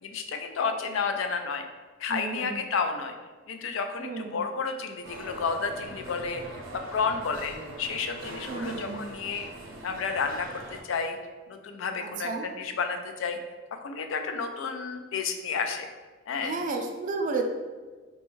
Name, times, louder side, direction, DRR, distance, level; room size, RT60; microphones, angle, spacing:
voice 1, 0.0-1.7 2.0-3.2 3.5-9.5 9.8-11.2 11.5-12.3 12.6-13.4 13.8-15.9 16.3-16.5, left 5 dB, 70° left, 6 dB, 0.4 m, -31 dB
voice 2, 2.1-2.6 4.0-4.4 8.5-9.0 12.0-12.5 16.4-17.4, right 4 dB, 40° right, 3 dB, 0.4 m, -32 dB
sound 1, 5.0-10.8, right 1 dB, 85° right, 0.6 m, -42 dB
4.0 x 2.3 x 3.0 m, 1.4 s
head